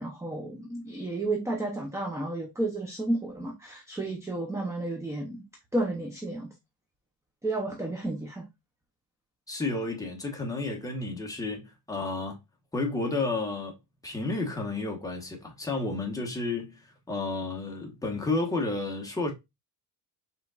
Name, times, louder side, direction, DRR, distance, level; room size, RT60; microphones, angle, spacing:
voice 1, 0.0-5.4 5.7-6.5 7.4-8.5, right 2 dB, 5° right, 0.7 m, -32 dB
voice 2, 9.5-12.4 12.7-13.8 14.0-19.3, left 3 dB, 10° left, 1.1 m, -31 dB
5.0 x 3.7 x 2.4 m
cardioid pair, 150°, 41 cm